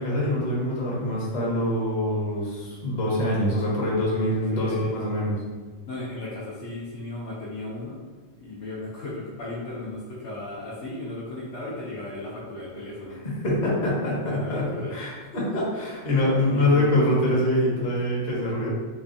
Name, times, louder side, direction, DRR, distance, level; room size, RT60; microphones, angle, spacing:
voice 1, 0.0-5.4 13.1-18.7, left 1 dB, 35° left, -6 dB, 1.0 m, -25 dB
voice 2, 4.2-5.0 5.9-8.0 8.4-13.2 14.2-14.9 16.5-16.9, left 1 dB, 65° left, -7 dB, 0.9 m, -35 dB
4.2 x 2.3 x 2.5 m, 1.4 s
omnidirectional pair, 1.4 m